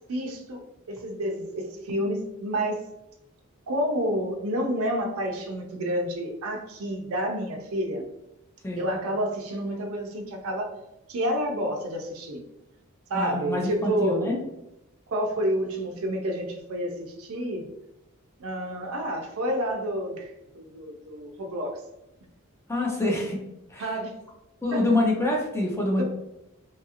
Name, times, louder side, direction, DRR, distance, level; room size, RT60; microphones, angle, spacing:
voice 1, 0.1-0.6 0.9-2.8 3.7-8.1 8.8-10.7 11.1-12.4 13.1-14.4 15.1-17.7 18.4-21.8 23.8-24.1 24.7-24.9 26.0-26.1, equal, 75° right, 2 dB, 0.5 m, -29 dB
voice 2, 13.1-14.4 22.7-23.4 23.7-24.0 24.6-26.0, left 2 dB, 10° left, -1 dB, 0.5 m, -26 dB
2.8 x 2.5 x 2.7 m, 0.92 s
head